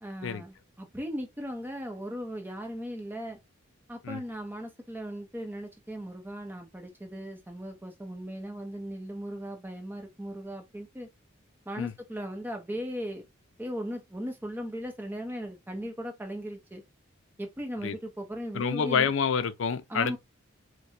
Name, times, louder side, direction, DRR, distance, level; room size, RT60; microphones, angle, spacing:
voice 1, 0.0-3.4 3.9-11.1 11.7-13.2 13.6-16.8 17.4-19.1 19.9-20.2, equal, 10° right, 0.7 m, -37 dB
voice 2, 18.5-20.2, left 6 dB, 70° left, 0.4 m, -28 dB
4.5 x 2.1 x 2.6 m
head